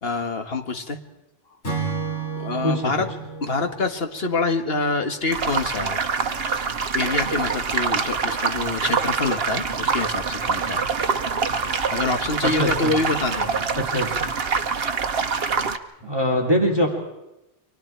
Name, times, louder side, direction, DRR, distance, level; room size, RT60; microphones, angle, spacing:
voice 1, 0.0-1.0 2.4-3.1 3.4-6.0 6.9-10.9 11.9-13.7, left 3 dB, 55° left, 6 dB, 1.9 m, -26 dB
Acoustic guitar / Strum, 1.6-5.1, right 5 dB, 75° left, 5.3 m, -32 dB
sound 1, 5.3-15.8, right 5 dB, 55° right, 1.3 m, -25 dB
voice 2, 12.4-12.9 13.8-14.3 16.0-16.9, equal, 20° right, 2 dB, 3.1 m, -23 dB
30.0 x 24.5 x 4.6 m, 0.94 s
omnidirectional pair, 1.2 m